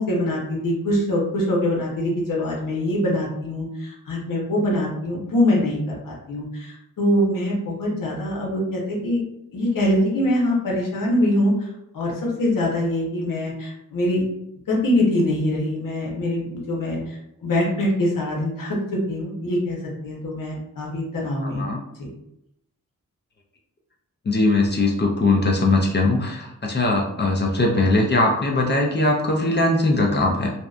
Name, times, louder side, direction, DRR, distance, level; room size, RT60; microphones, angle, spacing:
voice 1, 0.0-9.2 9.5-11.7 11.9-14.2 14.7-19.8 20.0-21.7 22.0-22.1, left 1 dB, 80° left, -3 dB, 0.8 m, -23 dB
voice 2, 21.4-21.8 24.2-30.5, left 2 dB, 35° left, 0 dB, 0.4 m, -20 dB
2.7 x 2.1 x 2.3 m, 0.82 s
wide cardioid pair, 85°, 32 cm